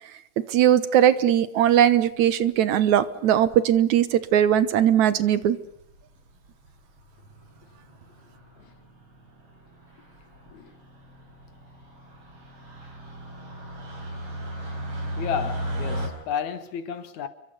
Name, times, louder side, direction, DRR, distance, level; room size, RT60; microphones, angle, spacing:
voice 1, 0.5-5.6, right 10 dB, 70° right, 2.4 m, -19 dB
sound 1, 2.2-2.4 3.4-3.8 4.6-4.7 4.9-5.0 5.3-5.4 5.7-6.0 6.5-6.7 7.0-16.1, equal, 45° right, 6.9 m, -36 dB
voice 2, 15.2-17.3, left 8 dB, 70° left, 3.0 m, -31 dB
29.0 x 24.0 x 6.9 m
omnidirectional pair, 3.6 m